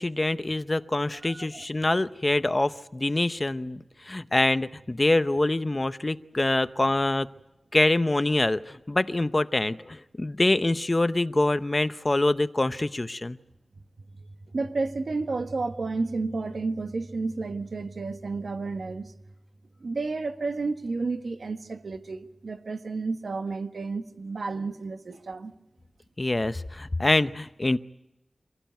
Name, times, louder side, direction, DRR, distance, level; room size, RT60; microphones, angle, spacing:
voice 1, 0.0-7.3 7.7-13.4 26.2-27.8, left 2 dB, 35° left, 0.8 m, -25 dB
voice 2, 1.2-1.6 14.5-19.1 19.8-25.5, right 3 dB, 80° right, 1.4 m, -31 dB
26.0 x 16.0 x 9.3 m
wide cardioid pair, 60°, 0 cm